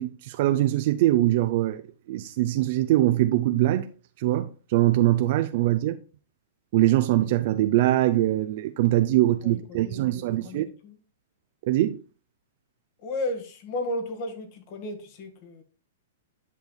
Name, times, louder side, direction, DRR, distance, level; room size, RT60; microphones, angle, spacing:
voice 1, 0.0-1.8 2.1-3.9 4.2-6.0 6.7-10.7 11.7-12.0, right 15 dB, 55° right, 0.5 m, -22 dB
voice 2, 9.4-11.0 13.0-15.6, left 1 dB, 45° left, 1.7 m, -34 dB
10.5 x 5.4 x 2.3 m
hypercardioid pair, 125°, 0 cm